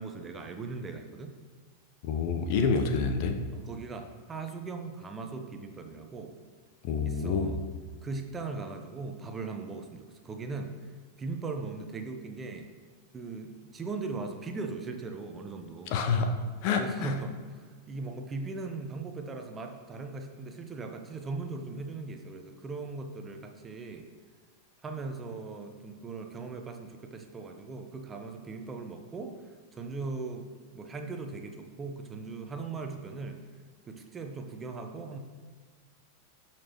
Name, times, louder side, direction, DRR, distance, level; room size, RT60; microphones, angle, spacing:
voice 1, 0.0-1.3 3.5-6.4 7.0-7.6 8.0-10.7 11.2-12.7 13.1-16.0 16.8-24.1 24.8-30.5 30.7-33.4 33.9-35.2, right 3 dB, 20° right, 5 dB, 1.0 m, -39 dB
voice 2, 2.0-3.4 6.8-7.6 15.9-16.3 16.6-17.1, left 5 dB, 45° left, 6 dB, 1.0 m, -27 dB
17.5 x 6.1 x 3.1 m, 1.5 s
figure-of-eight pair, 90°, 0 cm